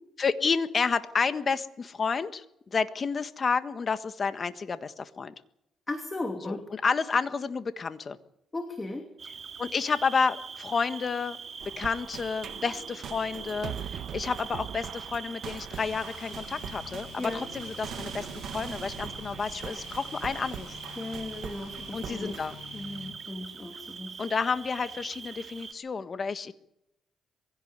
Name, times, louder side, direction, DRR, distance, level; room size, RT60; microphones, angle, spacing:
voice 1, 0.2-2.4 2.7-5.3 6.4-8.2 9.6-11.4 11.6-20.8 21.9-22.6 24.2-26.5, left 5 dB, 40° left, 10 dB, 1.5 m, -30 dB
voice 2, 5.9-6.7 8.5-9.1 17.2-17.4 21.0-22.5 22.7-24.2, left 2 dB, 20° left, 5 dB, 2.9 m, -36 dB
Cricket, 9.2-25.7, right 6 dB, 45° right, 2.4 m, -43 dB
sound 1, 11.6-22.6, right 9 dB, 70° right, 1.0 m, -42 dB
sound 2, 15.7-23.2, left 8 dB, 85° left, 1.8 m, -48 dB
23.0 x 16.5 x 8.2 m, 0.83 s
cardioid pair, 90°, 0 cm